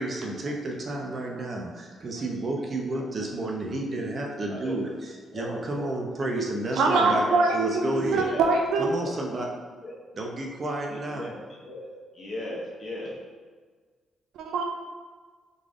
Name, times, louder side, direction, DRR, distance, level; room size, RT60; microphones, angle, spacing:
voice 1, 0.0-7.3 7.5-8.2 8.8-9.5 10.2-11.3, right 2 dB, 40° right, 0 dB, 0.8 m, -31 dB
voice 2, 6.7-8.9 14.4-14.6, right 3 dB, 80° right, 2 dB, 0.6 m, -23 dB
voice 3, 8.1-8.5 9.0-9.4 9.8-9.9 10.9-11.9 12.1-13.1, left 1 dB, 45° left, -4 dB, 1.3 m, -38 dB
4.0 x 3.3 x 3.7 m, 1.5 s
cardioid pair, 90°, 0 cm